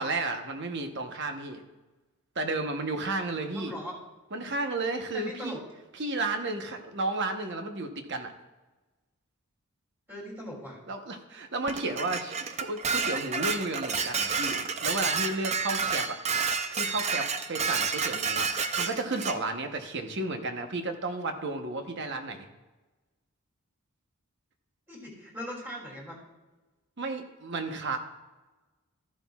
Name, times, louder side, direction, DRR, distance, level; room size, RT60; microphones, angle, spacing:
voice 1, 0.0-1.6 2.3-3.7 4.3-5.6 6.0-8.3 10.9-12.3 12.6-16.2 16.8-22.5 27.0-28.0, right 2 dB, 50° right, 5 dB, 1.0 m, -32 dB
voice 2, 3.5-4.0 5.1-5.6 10.1-10.8 24.9-26.2, equal, 10° right, -3 dB, 2.7 m, -39 dB
Dishes pots and pans, 11.7-19.4, right 5 dB, 30° right, 0.5 m, -30 dB
13.5 x 11.5 x 2.4 m, 1.2 s
head